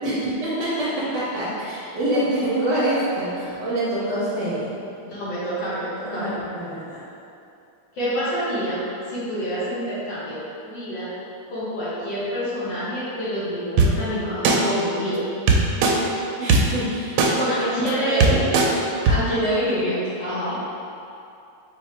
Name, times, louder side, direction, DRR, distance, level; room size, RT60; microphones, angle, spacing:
voice 1, 0.0-4.7 6.0-7.0 16.4-18.4, right 1 dB, 60° right, -9 dB, 1.4 m, -26 dB
voice 2, 5.1-6.3 7.9-11.1 11.5-15.2 17.5-18.4 19.1-20.6, equal, 60° left, -9 dB, 1.6 m, -27 dB
sound 1, 13.8-13.9 14.4-14.6 15.5-15.9 16.5-16.6 17.2-17.3 17.9-18.0 18.2-18.7 19.1-19.2, right 4 dB, 80° right, 1.4 m, -16 dB
4.6 x 2.7 x 4.3 m, 2.6 s
omnidirectional pair, 2.4 m